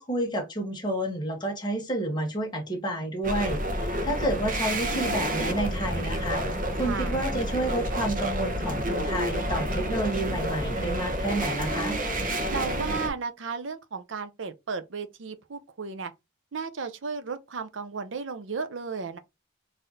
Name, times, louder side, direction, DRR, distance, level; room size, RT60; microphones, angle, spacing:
voice 1, 0.0-12.0, right 1 dB, 20° left, 1.4 m, -30 dB
sound 1, 3.2-13.1, right 1 dB, 45° right, 0.8 m, -29 dB
voice 2, 6.8-7.2 12.5-16.1 16.5-19.2, right 5 dB, 80° right, 0.6 m, -34 dB
4.1 x 2.7 x 3.8 m
head